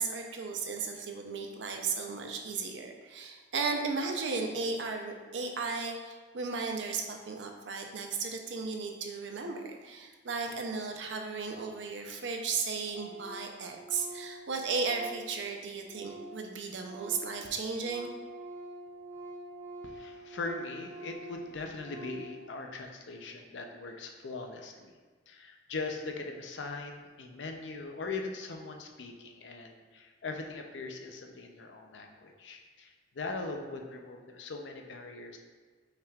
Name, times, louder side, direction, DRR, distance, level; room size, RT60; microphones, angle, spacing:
voice 1, 0.0-18.1, right 4 dB, 80° right, 3 dB, 0.6 m, -35 dB
Organ, 11.3-11.4 11.6-11.7 11.9-12.0 12.2-12.6 12.9-16.5 16.7-22.4, right 2 dB, 15° right, 0.5 m, -46 dB
voice 2, 19.8-25.0 25.3-35.4, left 3 dB, 85° left, 4 dB, 0.5 m, -40 dB
5.5 x 3.5 x 2.3 m, 1.5 s
head